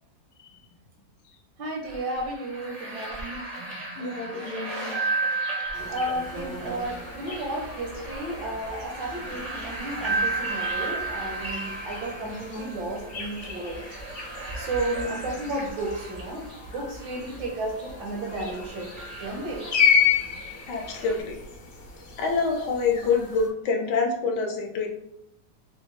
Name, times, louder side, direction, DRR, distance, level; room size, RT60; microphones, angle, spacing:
voice 1, 1.6-3.4 5.9-13.8 14.6-18.9 19.2-19.7, right 1 dB, 80° right, -1 dB, 1.3 m, -33 dB
sound 1, 1.8-21.2, right 2 dB, 60° right, 0.4 m, -35 dB
voice 2, 4.0-4.9 20.7-21.4 22.2-24.9, left 4 dB, 75° left, 2 dB, 1.2 m, -27 dB
sound 2, 5.7-23.5, left 6 dB, 55° left, 0.9 m, -32 dB
3.8 x 2.1 x 3.0 m, 0.79 s
omnidirectional pair, 2.0 m